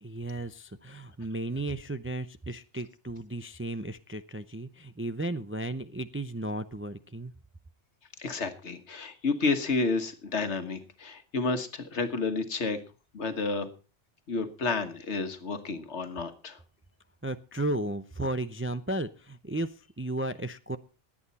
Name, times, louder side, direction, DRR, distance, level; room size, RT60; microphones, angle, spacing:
voice 1, 0.0-7.3 17.2-20.8, right 1 dB, 20° right, 11 dB, 0.4 m, -34 dB
voice 2, 8.2-12.8 13.1-13.7 14.3-16.6, left 3 dB, 75° left, 8 dB, 1.7 m, -30 dB
20.5 x 8.8 x 4.2 m, 0.34 s
omnidirectional pair, 1.2 m